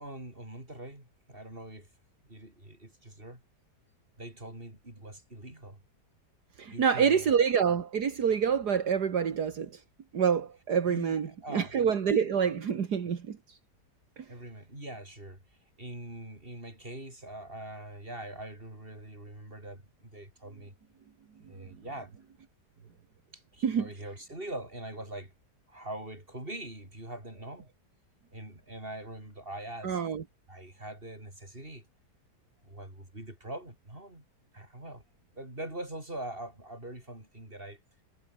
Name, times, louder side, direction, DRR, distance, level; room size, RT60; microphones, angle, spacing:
voice 1, 0.0-1.9 2.2-3.4 4.2-5.8 6.7-7.3 10.8-11.8 14.3-15.4 15.8-20.7 21.5-22.1 23.3-25.3 25.7-27.7 28.3-30.0 30.5-31.9 32.6-34.2 34.5-35.0 35.3-37.8, right 1 dB, 30° right, 7.4 m, -43 dB
voice 2, 6.6-9.8 10.1-13.6 14.2-14.3 23.6-23.9 29.8-30.2, right 7 dB, 70° right, 2.2 m, -27 dB
omnidirectional pair, 1.8 m